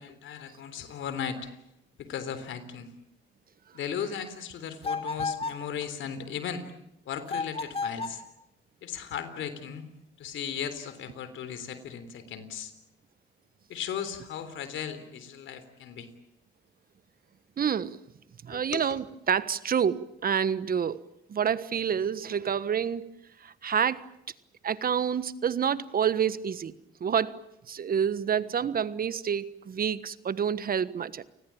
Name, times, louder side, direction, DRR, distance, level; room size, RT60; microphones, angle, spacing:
voice 1, 0.0-1.6 2.0-2.9 3.7-6.7 7.1-8.2 8.8-9.9 10.2-12.7 13.7-16.1 18.5-19.0, left 8 dB, 75° left, 12 dB, 3.6 m, -36 dB
sound 1, 4.8-5.7 7.3-8.2, left 4 dB, 30° left, 2.9 m, -32 dB
voice 2, 17.6-18.0 18.4-21.0 21.3-23.1 23.4-24.0 24.6-26.7 27.0-31.2, right 8 dB, 50° right, 15 dB, 1.3 m, -28 dB
29.5 x 20.0 x 8.7 m, 0.80 s
cardioid pair, 90°, 20 cm